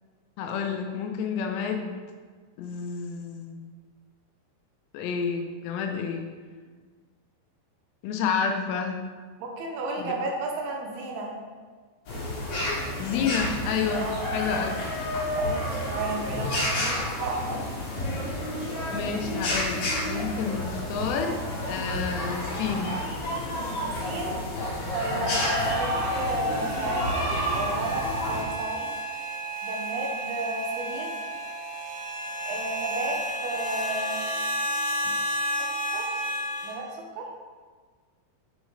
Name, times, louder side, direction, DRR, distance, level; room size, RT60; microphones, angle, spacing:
voice 1, 0.4-2.0 2.6-3.7 4.9-6.3 8.0-9.0 10.0-10.1 13.0-14.7 18.9-21.4 21.7-23.0, left 6 dB, 85° left, 4 dB, 2.8 m, -30 dB
voice 2, 9.4-11.3 13.9-14.2 15.3-17.6 24.0-24.4 24.9-27.1 27.5-28.9 29.6-31.1 32.5-33.2 33.4-34.2 35.6-35.7 35.9-36.1 36.6-37.3, right 2 dB, 80° right, 0 dB, 2.7 m, -33 dB
sound 1, 12.1-28.4, left 1 dB, 55° left, 2.3 m, -30 dB
sound 2, 25.9-36.8, right 1 dB, 60° right, 3.0 m, -32 dB
6.3 x 6.1 x 3.2 m, 1.5 s
omnidirectional pair, 4.8 m